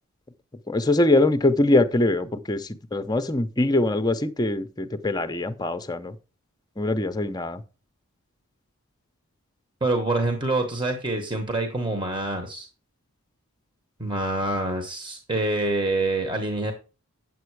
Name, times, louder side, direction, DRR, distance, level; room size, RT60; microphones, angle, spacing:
voice 1, 0.7-6.1 6.8-7.6, left 2 dB, 20° left, 0.6 m, -23 dB
voice 2, 9.8-12.7 14.0-16.7, right 2 dB, 20° right, 1.1 m, -26 dB
9.0 x 7.6 x 4.7 m
head